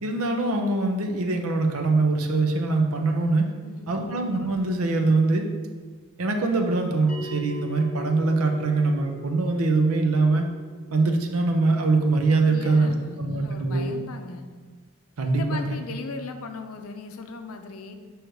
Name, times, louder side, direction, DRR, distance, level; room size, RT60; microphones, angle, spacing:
voice 1, 0.0-3.5 3.9-5.5 6.2-10.5 10.9-13.9 15.2-15.8, right 3 dB, 75° right, 4 dB, 0.7 m, -23 dB
voice 2, 3.6-3.9 12.5-14.5 15.3-17.9, left 4 dB, 70° left, 6 dB, 0.5 m, -38 dB
Bell, 7.1-12.1, equal, 35° left, 0.7 m, -42 dB
6.4 x 3.2 x 4.6 m, 1.5 s
head